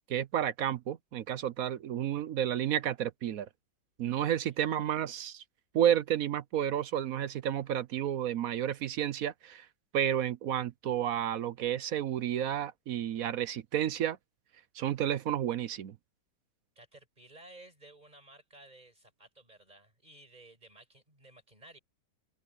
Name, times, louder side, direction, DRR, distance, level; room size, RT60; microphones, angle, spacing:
voice 1, 0.1-3.5 4.0-5.4 5.7-9.7 9.9-14.2 14.8-15.9, right 10 dB, 65° right, 1.0 m, -31 dB
voice 2, 4.3-4.6 16.8-21.8, right 1 dB, 25° right, 6.0 m, -56 dB
open air
omnidirectional pair, 1.9 m